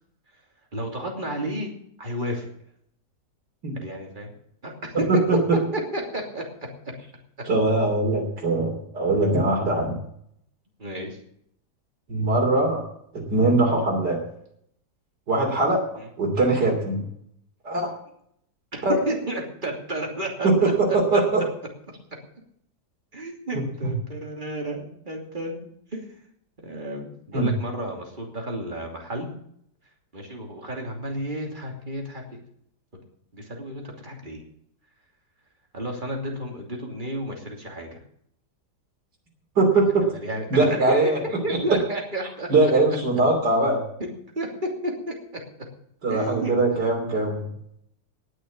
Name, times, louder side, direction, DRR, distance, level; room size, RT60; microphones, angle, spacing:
voice 1, 0.7-2.5 3.8-4.3 4.6-4.9 5.7-6.4 10.8-11.2 16.0-16.1 18.7-21.2 23.1-25.6 25.9-26.0 26.6-29.3 30.1-32.2 33.3-34.4 35.7-38.0 40.0-41.0 41.4-42.5 44.4-45.1 46.1-46.5, right 1 dB, 30° right, 1 dB, 3.0 m, -32 dB
voice 2, 5.1-5.6 7.5-9.9 12.1-12.8 13.1-14.2 15.3-15.9 16.2-17.0 17.6-17.9 18.8-19.0 20.4-21.4 23.5-23.6 27.3-27.5 39.6-40.0 40.5-41.2 41.5-41.6 42.5-43.8 46.0-47.5, right 2 dB, 85° right, 0 dB, 3.7 m, -21 dB
19.0 x 6.4 x 7.2 m, 0.70 s
omnidirectional pair, 1.8 m